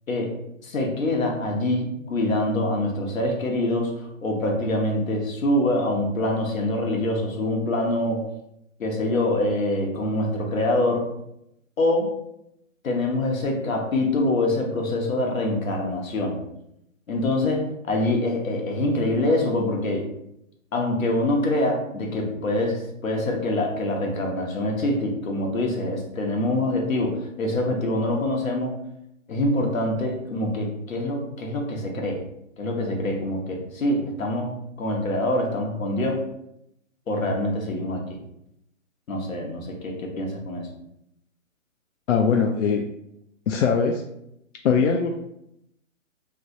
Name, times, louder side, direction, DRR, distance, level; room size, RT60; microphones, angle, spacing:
voice 1, 0.6-8.3 8.8-11.1 11.8-12.1 12.8-16.4 17.1-20.1 20.7-28.8 29.3-32.2 32.6-36.2 37.1-38.2 39.1-40.7, left 1 dB, 85° left, 1 dB, 1.0 m, -25 dB
voice 2, 42.1-42.8 43.5-44.0 44.6-45.2, left 6 dB, 65° left, 2 dB, 0.5 m, -21 dB
3.2 x 2.9 x 2.7 m, 0.80 s
hypercardioid pair, 150°, 40 cm